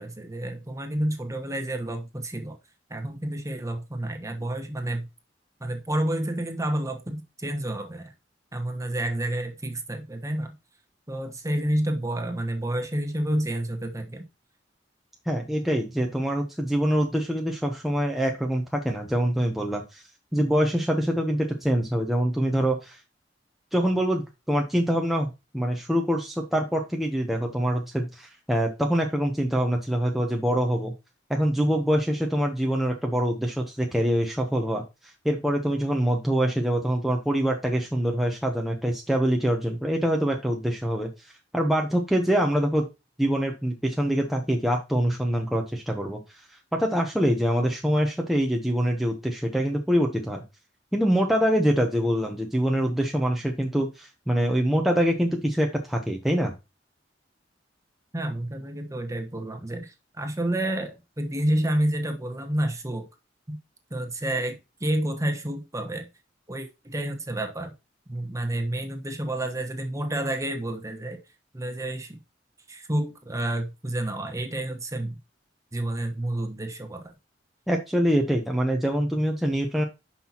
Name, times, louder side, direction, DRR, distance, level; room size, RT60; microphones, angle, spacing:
voice 1, 0.0-2.6 2.9-5.1 5.6-8.1 8.5-10.5 11.1-14.2 58.1-63.1 63.5-63.6 63.9-66.1 66.5-67.7 68.1-71.2 71.5-72.2 72.7-75.2 75.7-77.1, right 1 dB, 20° right, 1.2 m, -29 dB
voice 2, 15.3-20.0 20.3-23.0 23.7-30.9 31.3-41.1 41.5-42.9 43.2-46.2 46.8-50.4 50.9-56.5 77.7-79.8, equal, ahead, 0.8 m, -25 dB
10.0 x 5.7 x 2.9 m
head